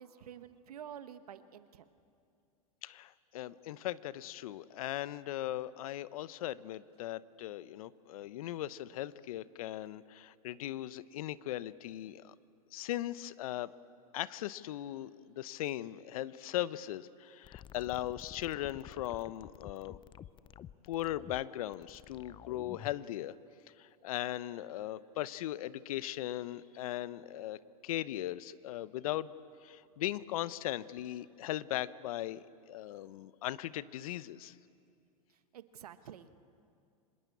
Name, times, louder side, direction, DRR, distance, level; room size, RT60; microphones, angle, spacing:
voice 1, 0.0-1.9 35.3-36.4, right 9 dB, 80° right, 12 dB, 1.2 m, -49 dB
voice 2, 2.8-12.3 12.7-13.7 14.1-20.0 20.9-23.3 23.8-29.3 29.6-34.5, left 14 dB, 70° left, 17 dB, 0.8 m, -38 dB
sound 1, 17.4-23.0, left 10 dB, 25° left, 0.6 m, -50 dB
25.0 x 20.5 x 8.5 m, 2.5 s
hypercardioid pair, 105°, 19 cm